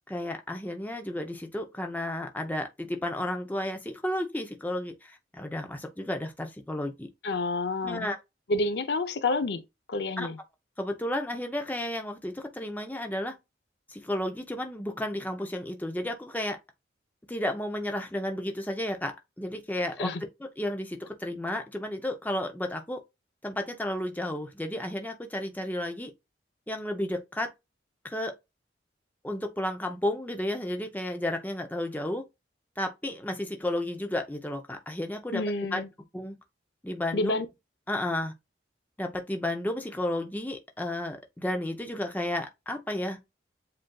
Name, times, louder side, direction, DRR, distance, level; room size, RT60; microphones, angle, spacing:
voice 1, 0.1-7.1 7.8-8.2 10.2-10.3 10.8-13.3 13.9-16.6 17.3-20.1 20.6-23.0 23.4-26.1 26.7-27.5 28.0-28.3 29.2-32.2 32.8-35.4 35.7-35.8 36.1-36.4 36.8-37.4 37.9-38.3 39.0-43.2, left 1 dB, 10° left, 0.5 m, -32 dB
voice 2, 7.2-8.1 8.5-9.6 9.9-10.4 20.0-20.2 35.3-35.9 37.1-37.5, left 2 dB, 65° left, 0.5 m, -29 dB
7.6 x 2.6 x 2.3 m
head